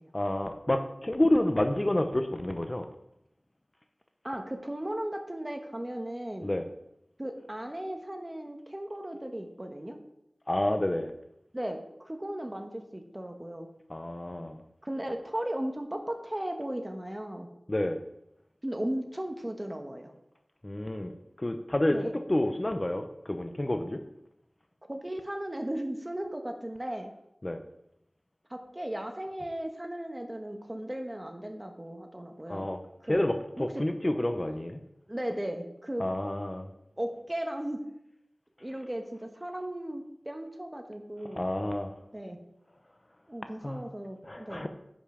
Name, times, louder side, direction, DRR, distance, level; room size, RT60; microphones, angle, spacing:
voice 1, 0.1-2.9 6.4-6.6 10.5-11.1 13.9-14.6 17.7-18.0 20.6-21.1 21.4-24.0 27.4-27.6 32.5-32.8 33.1-34.8 36.0-36.7 41.4-41.9 43.6-43.8 44.3-44.7, left 1 dB, 35° left, 7 dB, 0.7 m, -29 dB
voice 2, 4.2-6.5 7.2-10.0 11.5-13.7 14.8-17.5 18.6-20.1 21.9-22.2 24.9-27.1 28.5-32.7 33.0-33.3 33.6-33.8 35.1-36.1 37.0-37.8 38.6-41.5 42.1-42.4 43.3-44.7, right 1 dB, 25° right, 5 dB, 1.3 m, -36 dB
10.5 x 5.4 x 5.1 m, 0.82 s
wide cardioid pair, 45°, 0 cm